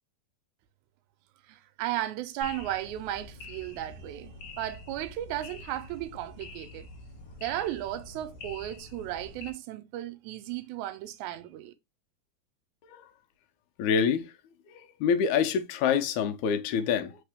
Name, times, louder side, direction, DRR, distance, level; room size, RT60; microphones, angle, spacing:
voice 1, 1.5-6.9 7.4-11.7, right 13 dB, 85° right, 2.0 m, -35 dB
sound 1, 2.4-9.5, left 2 dB, 65° left, 1.7 m, -46 dB
voice 2, 13.8-14.3 15.0-17.2, left 7 dB, 85° left, 2.0 m, -26 dB
4.2 x 3.6 x 3.3 m
omnidirectional pair, 3.4 m